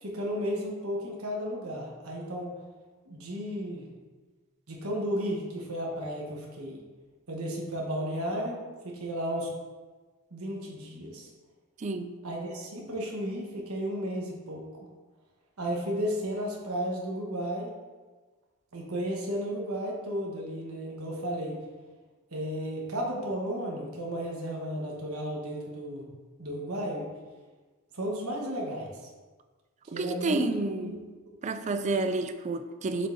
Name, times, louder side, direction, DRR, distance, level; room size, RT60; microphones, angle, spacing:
voice 1, 0.0-2.5 3.0-3.9 4.7-6.8 7.3-8.6 8.8-9.5 10.3-11.3 12.2-14.6 15.6-17.7 18.7-21.6 22.3-26.1 26.4-27.1 27.9-28.9 29.9-31.0 31.3-31.4, equal, 75° right, -2 dB, 1.2 m, -33 dB
voice 2, 11.8-12.1 29.9-31.0 31.4-33.1, right 3 dB, 30° right, 9 dB, 0.3 m, -30 dB
7.1 x 5.3 x 2.7 m, 1.3 s
head